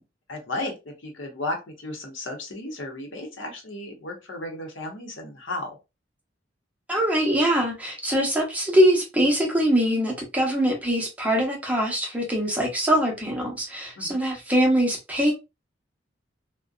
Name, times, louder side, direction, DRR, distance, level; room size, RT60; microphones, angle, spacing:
voice 1, 0.3-0.7 1.0-5.8 14.0-14.2, left 2 dB, 85° left, 0.8 m, -34 dB
voice 2, 6.9-15.3, equal, 10° right, 0.7 m, -23 dB
2.6 x 2.1 x 2.3 m
head